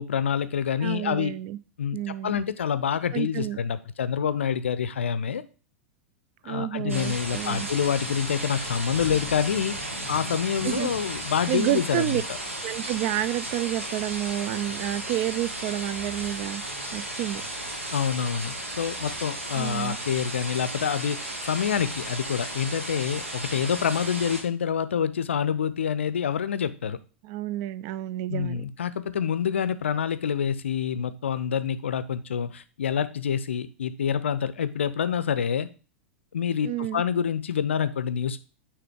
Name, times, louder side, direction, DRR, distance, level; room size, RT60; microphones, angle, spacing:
voice 1, 0.0-1.3 1.8-2.0 2.2-5.4 6.4-9.8 10.1-12.2 17.9-27.0 28.3-35.7 36.3-38.4, left 8 dB, 65° left, 14 dB, 0.5 m, -27 dB
voice 2, 0.8-1.6 1.9-2.4 3.1-3.6 6.4-7.7 10.6-10.9 11.5-12.2 12.6-16.6 16.9-17.4 19.5-20.0 27.2-28.6 36.6-37.0, right 14 dB, 40° right, 17 dB, 0.3 m, -29 dB
sound 1, 6.9-24.4, right 1 dB, 75° right, 1.2 m, -34 dB
9.1 x 3.2 x 3.6 m, 0.36 s
figure-of-eight pair, 95°, 7 cm